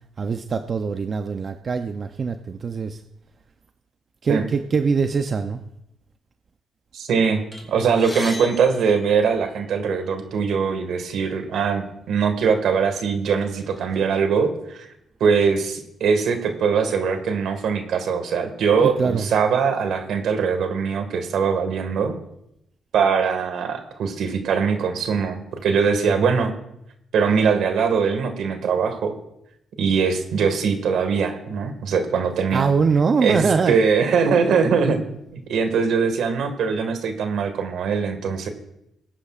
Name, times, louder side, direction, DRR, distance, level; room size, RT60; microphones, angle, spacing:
voice 1, 0.2-3.0 4.2-5.6 18.8-19.3 26.0-26.3 32.5-33.8 34.8-35.0, right 5 dB, 45° right, 7 dB, 0.6 m, -23 dB
voice 2, 6.9-7.4 7.7-14.9 15.2-22.1 22.9-26.5 27.1-29.1 29.8-32.7 33.2-35.0 35.3-38.5, right 6 dB, 75° right, 7 dB, 1.8 m, -22 dB
sound 1, 7.5-9.8 10.7-10.8 11.1-11.3 12.2-12.3 12.8-14.0, left 2 dB, 20° left, 2.4 m, -39 dB
20.0 x 10.0 x 2.5 m, 0.80 s
cardioid pair, 90°, 0 cm